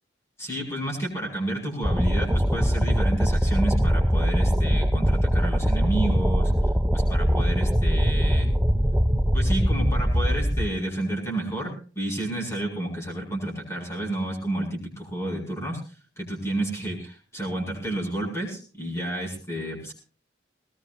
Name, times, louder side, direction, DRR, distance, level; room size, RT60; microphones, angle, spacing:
voice 1, 0.4-6.5 6.9-8.5 9.3-15.8 16.2-19.9, right 1 dB, 15° left, -1 dB, 7.1 m, -30 dB
sound 1, 1.8-10.7, equal, 5° right, 0.7 m, -22 dB
21.0 x 19.5 x 2.7 m, 0.38 s
head